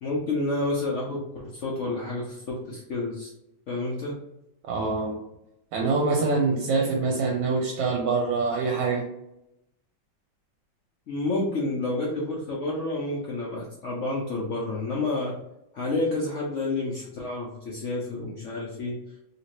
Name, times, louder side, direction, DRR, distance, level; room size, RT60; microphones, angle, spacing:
voice 1, 0.0-3.3 3.7-4.2 11.1-15.3 15.7-19.0, left 2 dB, 70° left, -4 dB, 0.7 m, -29 dB
voice 2, 4.7-5.2 5.7-9.1, right 4 dB, 75° right, 0 dB, 1.2 m, -25 dB
3.0 x 2.8 x 3.0 m, 0.85 s
omnidirectional pair, 2.1 m